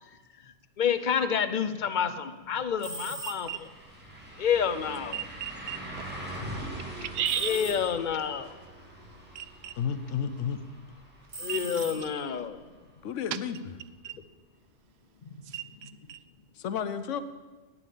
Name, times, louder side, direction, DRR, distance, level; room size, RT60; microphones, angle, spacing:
voice 1, 0.8-3.7 4.4-5.2 7.4-8.5 11.4-12.6, left 7 dB, 50° left, 11 dB, 0.7 m, -28 dB
sound 1, 2.6-2.7 3.0-12.8 13.2-13.3 16.1-16.2, right 1 dB, 10° right, 2.3 m, -43 dB
sound 2, 2.8-3.7 7.2-8.2 11.3-12.4, right 2 dB, 85° right, 1.7 m, -41 dB
voice 2, 3.2-3.6 5.1-5.8 7.0-7.6 9.4-9.7 11.5-11.6 14.0-14.1 15.5-15.6 16.1-16.2, right 10 dB, 65° right, 14 dB, 0.8 m, -33 dB
voice 3, 9.8-10.6 13.0-13.7 16.6-17.2, left 7 dB, 85° left, 12 dB, 1.0 m, -32 dB
8.7 x 7.0 x 8.3 m, 1.3 s
omnidirectional pair, 1.2 m